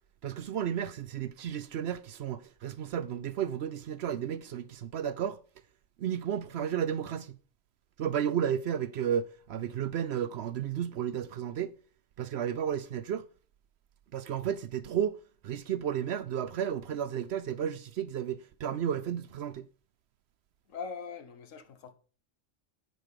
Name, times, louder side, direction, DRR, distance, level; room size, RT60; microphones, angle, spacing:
voice 1, 0.2-5.4 6.0-7.4 8.0-11.7 12.2-13.3 14.1-19.7, right 9 dB, 65° right, 0.8 m, -33 dB
voice 2, 20.7-21.9, left 5 dB, 80° left, 1.5 m, -41 dB
9.4 x 5.2 x 6.6 m
omnidirectional pair, 1.3 m